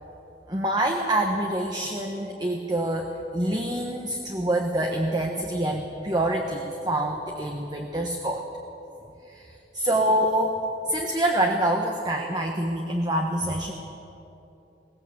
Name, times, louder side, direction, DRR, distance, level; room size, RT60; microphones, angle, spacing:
voice 1, 0.5-8.4 9.3-10.6 10.9-13.7, right 1 dB, 25° right, 2 dB, 1.3 m, -26 dB
21.0 x 18.0 x 8.1 m, 2.9 s
head